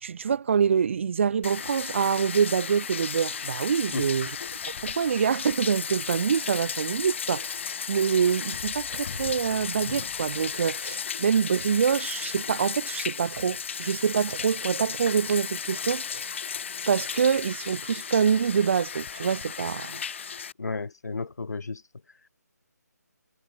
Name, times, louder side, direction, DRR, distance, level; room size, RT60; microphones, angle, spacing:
voice 1, 0.0-4.3 4.6-16.3 16.9-20.0, right 7 dB, 45° right, 2.4 m, -26 dB
Bathtub (filling or washing), 1.4-20.5, left 7 dB, 45° left, 1.5 m, -35 dB
voice 2, 3.9-4.4 20.6-21.8, left 4 dB, 70° left, 5.6 m, -33 dB
figure-of-eight pair, 155°, 9 cm